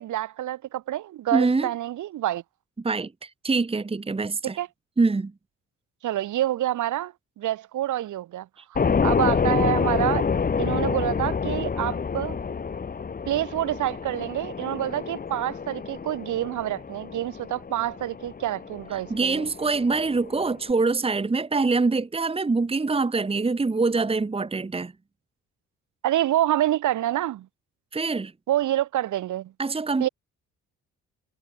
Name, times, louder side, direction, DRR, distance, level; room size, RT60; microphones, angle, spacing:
voice 1, 0.0-2.4 4.6-4.7 6.0-10.3 10.6-12.4 13.3-19.4 26.0-27.5 28.5-29.5 30.0-30.1, right 13 dB, 75° right, 2.5 m, -27 dB
voice 2, 1.3-1.7 2.8-4.6 5.0-5.3 19.1-24.9 27.9-28.3 29.6-30.1, right 3 dB, 20° right, 1.4 m, -24 dB
sound 1, 8.7-20.7, left 5 dB, 30° left, 1.2 m, -28 dB
cardioid pair, 90°, 30 cm